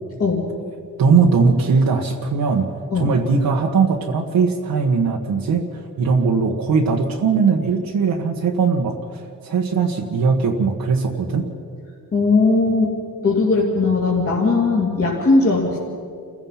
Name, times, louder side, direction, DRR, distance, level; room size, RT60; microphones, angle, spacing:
voice 1, 1.0-2.7 2.9-11.4, right 5 dB, 70° right, 0 dB, 1.6 m, -19 dB
voice 2, 12.1-12.9 13.2-15.8, left 3 dB, 40° left, -5 dB, 2.9 m, -18 dB
28.5 x 15.5 x 5.9 m, 2.4 s
wide cardioid pair, 135°, 36 cm